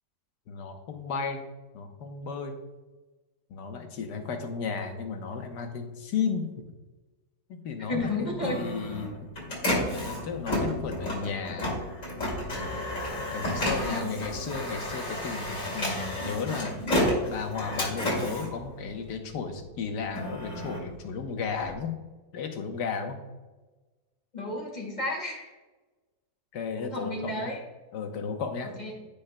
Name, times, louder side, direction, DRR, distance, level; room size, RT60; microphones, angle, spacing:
voice 1, 0.5-1.4 1.7-2.5 3.5-6.5 7.5-9.2 10.0-11.8 13.3-16.7 17.3-22.0 22.3-23.2 26.5-27.5 27.9-28.7, left 5 dB, 85° left, 5 dB, 1.6 m, -34 dB
voice 2, 7.9-8.6 13.8-14.2 24.3-25.5 26.8-27.6 28.6-29.0, left 2 dB, 25° left, -2 dB, 2.1 m, -32 dB
Printer, 8.0-19.4 19.9-21.7, left 1 dB, 50° left, 3.0 m, -31 dB
15.5 x 5.2 x 2.2 m, 1.2 s
omnidirectional pair, 1.7 m